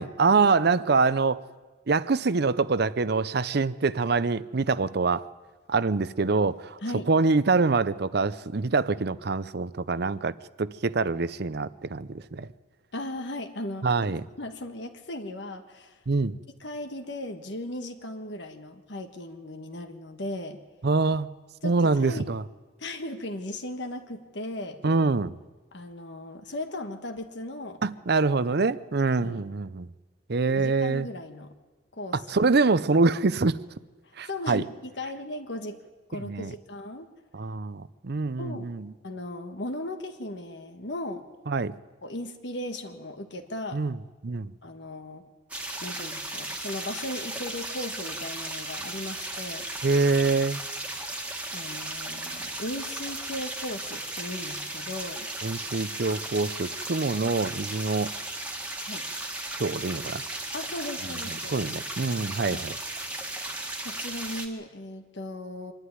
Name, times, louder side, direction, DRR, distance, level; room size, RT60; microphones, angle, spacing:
voice 1, 0.0-1.4 1.9-5.3 5.7-6.8 7.1-12.5 13.8-14.3 16.1-16.4 20.8-21.3 21.6-22.4 24.8-25.3 27.8-29.9 30.3-31.1 32.1-33.6 34.2-34.6 36.1-36.5 37.3-38.9 41.5-41.8 43.7-44.0 44.2-44.5 49.8-50.6 55.4-58.1 59.6-60.2 61.3-62.8, right 4 dB, 60° right, 16 dB, 0.6 m, -25 dB
voice 2, 6.8-7.1 12.9-16.0 16.6-20.6 21.6-22.2 22.8-24.8 25.7-27.8 29.2-29.4 30.6-31.5 31.9-32.5 34.1-35.8 36.1-37.1 38.4-38.7 39.0-41.3 42.0-43.8 44.6-45.2 45.8-49.6 51.5-55.3 58.8-59.1 60.5-61.7 62.4-62.6 63.8-65.7, left 1 dB, 65° left, 6 dB, 1.5 m, -37 dB
sound 1, 45.5-64.5, right 2 dB, 5° right, 1.8 m, -36 dB
25.0 x 11.5 x 9.5 m, 1.3 s
head